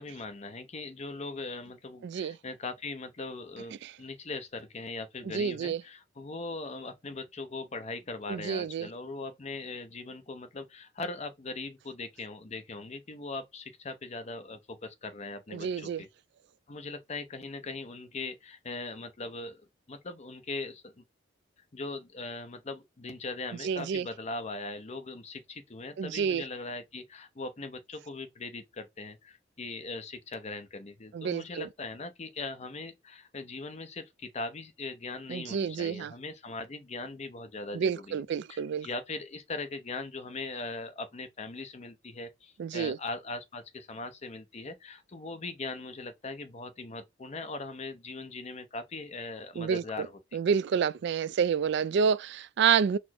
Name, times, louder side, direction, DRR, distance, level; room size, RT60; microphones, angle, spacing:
voice 1, 0.0-16.1 16.7-21.0 21.7-38.2 38.5-50.4, left 3 dB, 35° left, 0.6 m, -40 dB
voice 2, 2.0-2.4 3.8-3.9 5.3-5.8 8.3-8.9 15.5-16.0 23.6-24.1 26.0-26.4 31.1-31.7 35.3-36.1 37.7-38.9 42.6-43.0 49.6-50.1 50.3-53.0, right 7 dB, 60° right, 0.3 m, -29 dB
4.3 x 2.1 x 4.3 m
head